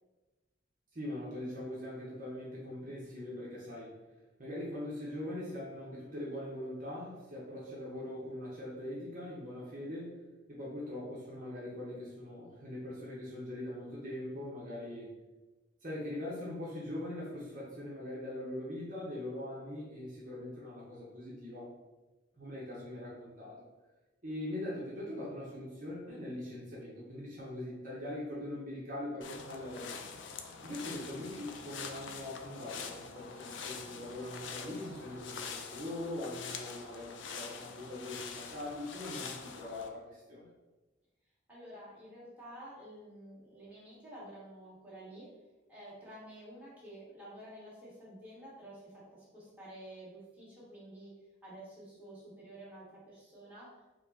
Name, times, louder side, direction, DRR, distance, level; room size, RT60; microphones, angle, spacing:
voice 1, 0.9-3.9 4.4-10.2 10.5-15.1 15.8-21.7 22.4-23.6 24.2-30.0 30.6-40.5, left 1 dB, 40° right, -6 dB, 0.9 m, -42 dB
sound 1, 29.2-39.9, left 5 dB, 75° left, 0.4 m, -45 dB
voice 2, 41.5-45.3 45.7-51.1 51.4-53.8, right 1 dB, 10° right, -8 dB, 1.3 m, -50 dB
5.0 x 2.1 x 4.0 m, 1.1 s
head